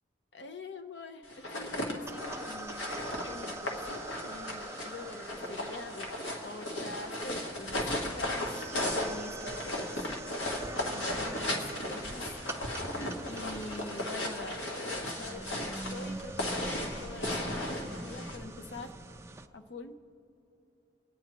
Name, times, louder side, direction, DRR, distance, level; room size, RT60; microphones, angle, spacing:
voice 1, 0.3-6.1 6.4-9.9 10.9-12.4 13.3-18.9 19.5-20.0, left 3 dB, 65° left, 9 dB, 0.7 m, -45 dB
sound 1, 1.3-18.4, left 1 dB, 85° left, 1.6 m, -36 dB
sound 2, 2.1-19.5, right 2 dB, 15° right, 0.3 m, -44 dB
26.5 x 9.1 x 2.9 m, 2.8 s
head